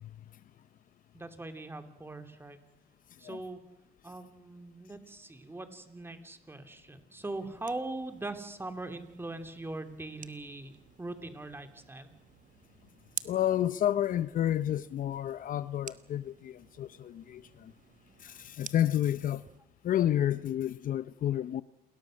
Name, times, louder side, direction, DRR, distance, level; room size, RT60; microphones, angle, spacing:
voice 1, 1.1-2.6 3.2-3.6 4.0-12.1, right 2 dB, 15° right, 3.0 m, -41 dB
sound 1, 7.2-19.6, right 9 dB, 50° right, 1.2 m, -50 dB
voice 2, 13.2-17.7 18.2-19.4 19.8-21.6, left 11 dB, 55° left, 0.8 m, -30 dB
28.5 x 21.0 x 6.5 m
cardioid pair, 110°, 17 cm